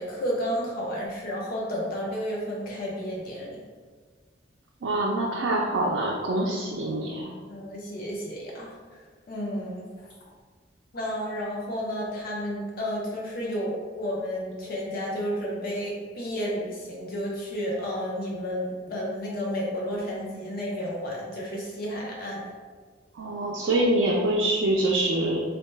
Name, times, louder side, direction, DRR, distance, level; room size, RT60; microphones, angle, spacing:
voice 1, 0.0-3.6 7.5-9.0 9.3-9.8 10.9-22.4, equal, 50° left, -3 dB, 0.5 m, -31 dB
voice 2, 4.8-7.3 23.1-25.4, right 1 dB, 80° right, -2 dB, 0.4 m, -25 dB
4.0 x 2.1 x 3.1 m, 1.5 s
head